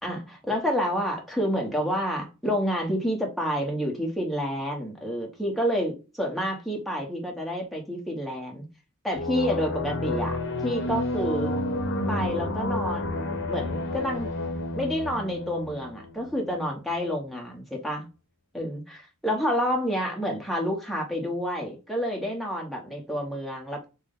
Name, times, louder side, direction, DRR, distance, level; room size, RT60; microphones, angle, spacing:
voice 1, 0.0-8.6 9.0-11.5 12.1-14.3 14.7-18.0 18.5-23.9, equal, ahead, 1.1 m, -29 dB
sound 1, 9.1-16.5, left 1 dB, 60° left, 0.8 m, -30 dB
6.0 x 2.2 x 3.6 m
head